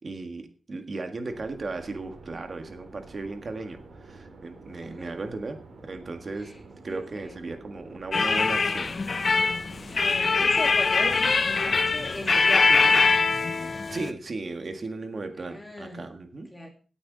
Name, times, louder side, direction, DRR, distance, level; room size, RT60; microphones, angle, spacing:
voice 1, 0.0-6.6 6.8-9.0 13.9-16.5, right 3 dB, 35° right, 6 dB, 1.8 m, -36 dB
sound 1, 1.3-12.4, right 3 dB, 60° right, 3.9 m, -48 dB
voice 2, 6.9-7.4 9.9-13.0 15.5-16.1 16.5-16.7, left 1 dB, 15° left, 2 dB, 2.4 m, -37 dB
sound 2, 8.1-14.1, left 4 dB, 35° left, 0.7 m, -23 dB
17.0 x 8.8 x 4.0 m, 0.39 s
wide cardioid pair, 175°, 0 cm